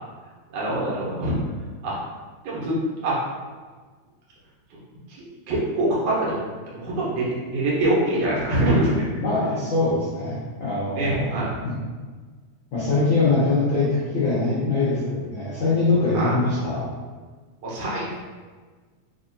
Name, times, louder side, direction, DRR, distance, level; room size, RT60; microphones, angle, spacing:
voice 1, 0.5-1.4 1.8-1.9 2.4-2.8 3.0-3.2 5.2-6.4 6.7-9.1 10.9-11.5 16.1-16.3 17.6-18.1, right 1 dB, 65° right, -6 dB, 2.0 m, -24 dB
voice 2, 9.2-11.7 12.7-16.9, left 3 dB, 85° left, -10 dB, 1.0 m, -23 dB
4.8 x 2.7 x 2.7 m, 1.4 s
omnidirectional pair, 3.5 m